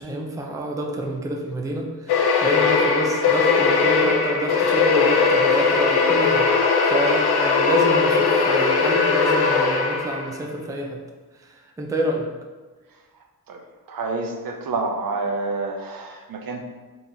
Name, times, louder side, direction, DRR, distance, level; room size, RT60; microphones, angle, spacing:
voice 1, 0.0-6.5 6.9-11.0 11.4-12.3, right 1 dB, 10° right, 1 dB, 0.4 m, -28 dB
sound 1, 2.1-10.4, left 4 dB, 85° left, 0.6 m, -19 dB
voice 2, 13.5-16.6, right 3 dB, 65° right, 3 dB, 0.6 m, -28 dB
3.8 x 2.9 x 3.8 m, 1.3 s
wide cardioid pair, 125°, 38 cm